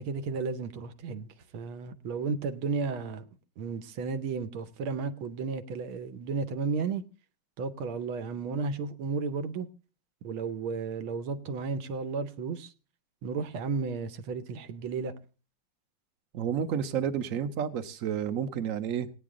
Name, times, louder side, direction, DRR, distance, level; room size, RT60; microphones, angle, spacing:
voice 1, 0.0-3.3 3.6-7.0 7.6-9.7 10.2-12.7 13.2-15.1, right 4 dB, 80° right, 1.7 m, -33 dB
voice 2, 16.3-19.1, right 8 dB, 55° right, 1.0 m, -30 dB
17.0 x 9.4 x 3.7 m
omnidirectional pair, 2.3 m